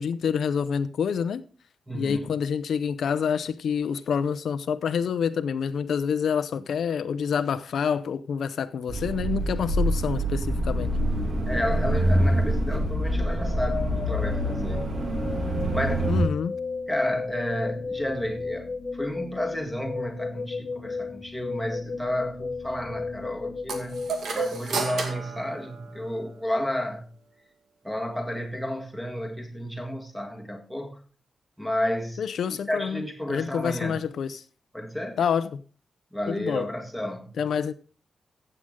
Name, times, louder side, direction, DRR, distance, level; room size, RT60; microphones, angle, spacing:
voice 1, 0.0-1.5 1.9-10.9 16.1-16.5 32.2-33.0 33.3-34.4 35.2-35.6 36.3-36.7 37.4-37.7, left 7 dB, 75° left, 0.6 m, -27 dB
voice 2, 1.9-2.3 11.4-15.0 15.7-16.1 16.9-27.1 27.8-31.0 31.6-34.0 34.7-35.2 36.1-37.4, left 1 dB, ahead, 1.7 m, -31 dB
sound 1, 8.9-16.2, right 1 dB, 45° right, 2.1 m, -25 dB
sound 2, 13.1-25.1, left 4 dB, 30° left, 0.7 m, -35 dB
sound 3, 23.7-26.4, right 4 dB, 70° right, 2.1 m, -32 dB
15.0 x 7.8 x 3.7 m
wide cardioid pair, 175°, 0 cm